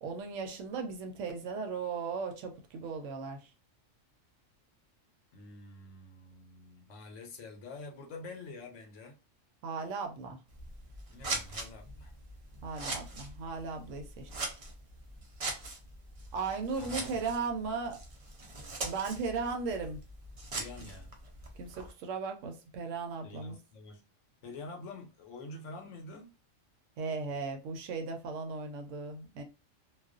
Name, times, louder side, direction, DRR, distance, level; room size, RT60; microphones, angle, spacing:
voice 1, 0.0-3.5 9.6-10.4 12.6-14.3 16.3-18.0 18.8-20.0 20.8-20.9 21.6-23.6 27.0-29.4, right 4 dB, 75° right, 0.9 m, -37 dB
voice 2, 5.3-9.2 11.1-12.1 16.8-17.2 20.5-21.1 23.2-24.0 24.4-26.4, left 3 dB, 70° left, 1.0 m, -47 dB
Scissors, 10.5-21.9, right 2 dB, 50° right, 0.4 m, -42 dB
2.4 x 2.2 x 2.4 m
omnidirectional pair, 1.3 m